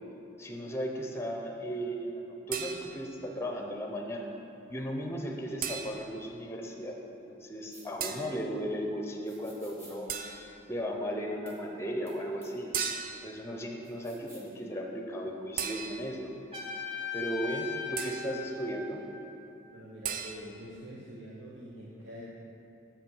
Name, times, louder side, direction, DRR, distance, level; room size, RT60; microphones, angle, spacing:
voice 1, 0.4-4.3 4.7-7.0 7.3-10.1 10.7-12.8 13.2-16.3 17.1-19.0, equal, 15° left, 2 dB, 0.6 m, -36 dB
sound 1, 2.5-3.2 5.6-6.2 8.0-8.4 10.1-10.6 12.7-13.4 15.6-16.3 18.0-18.4 20.0-20.3, right 7 dB, 45° right, 0.4 m, -36 dB
sound 2, 7.7-7.9 9.3-10.0 11.5-11.6 12.1-12.2 12.4-12.5 13.8-14.5, equal, 15° right, 1.2 m, -54 dB
Trumpet, 16.5-19.4, left 6 dB, 30° right, 1.0 m, -39 dB
voice 2, 19.7-22.2, equal, 80° right, -5 dB, 0.8 m, -45 dB
7.1 x 5.4 x 5.4 m, 2.8 s
head